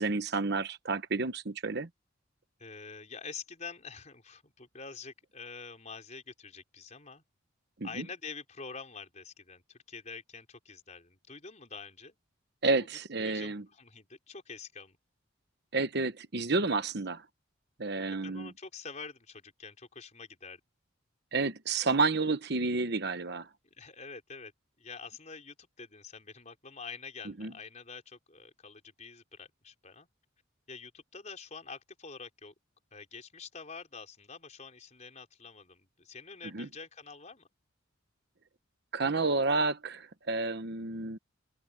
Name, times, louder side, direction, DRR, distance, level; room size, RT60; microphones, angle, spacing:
voice 1, 0.0-1.9 7.8-8.0 12.6-13.6 15.7-17.2 17.8-18.5 21.3-23.5 27.4-27.5 36.5-36.7 38.9-41.2, right 3 dB, 55° right, 1.1 m, -30 dB
voice 2, 2.6-7.2 7.8-12.2 13.2-15.0 18.1-20.6 23.6-24.5 24.8-30.1 30.7-32.5 32.9-37.5, left 5 dB, 35° left, 4.6 m, -46 dB
open air
head